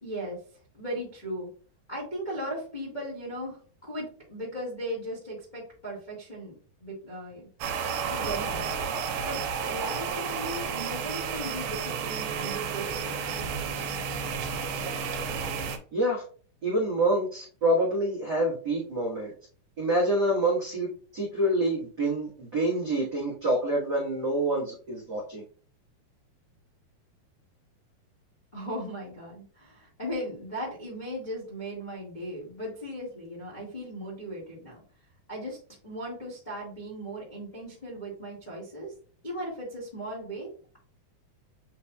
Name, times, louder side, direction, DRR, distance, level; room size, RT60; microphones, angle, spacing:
voice 1, 0.0-0.4 0.7-1.5 1.9-7.4 8.1-8.7 9.2-13.6 28.5-34.8 35.3-35.6 35.8-38.9 39.2-40.5, equal, 40° left, -6 dB, 0.6 m, -37 dB
sound 1, 7.6-15.8, right 6 dB, 80° right, 2.3 m, -32 dB
voice 2, 15.9-16.2 16.6-19.3 19.8-25.4, right 1 dB, 65° right, -7 dB, 1.0 m, -27 dB
8.2 x 2.8 x 2.3 m, 0.43 s
omnidirectional pair, 4.2 m